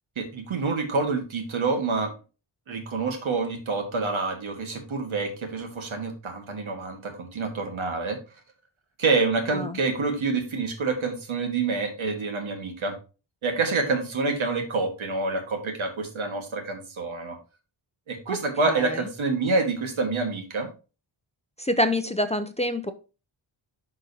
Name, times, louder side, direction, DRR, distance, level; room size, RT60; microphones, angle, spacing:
voice 1, 0.2-2.1 2.7-8.2 9.0-12.9 13.4-17.4 18.1-20.7, right 3 dB, 80° right, 5 dB, 1.7 m, -27 dB
voice 2, 18.6-19.0 21.6-22.9, left 1 dB, 15° left, 8 dB, 0.5 m, -26 dB
11.0 x 3.8 x 2.7 m, 0.32 s
wide cardioid pair, 90°, 48 cm